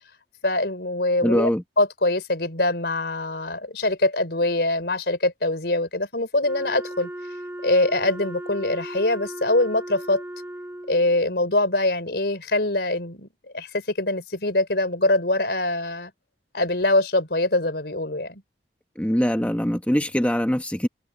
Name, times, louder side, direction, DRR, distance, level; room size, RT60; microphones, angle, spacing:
voice 1, 0.4-1.5 1.8-7.1 7.6-10.2 10.9-16.1 16.5-18.4, left 2 dB, 70° left, 4.3 m, -23 dB
voice 2, 1.2-1.6 19.0-20.9, equal, 10° left, 1.3 m, -22 dB
Wind instrument woodwind instrument, 6.4-11.1, right 1 dB, 15° right, 3.8 m, -36 dB
head